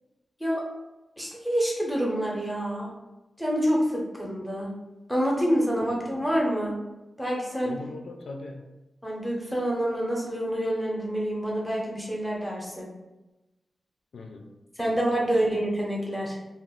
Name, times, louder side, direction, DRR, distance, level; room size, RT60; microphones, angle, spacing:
voice 1, 1.2-2.9 3.4-4.7 5.1-6.8 7.2-7.7 9.0-12.9 14.8-16.4, equal, ahead, -3 dB, 0.6 m, -27 dB
voice 2, 5.8-6.3 7.6-8.8 14.1-14.6 14.9-15.6, left 3 dB, 85° left, 3 dB, 0.4 m, -42 dB
2.4 x 2.4 x 3.5 m, 1.0 s
wide cardioid pair, 180°, 0 cm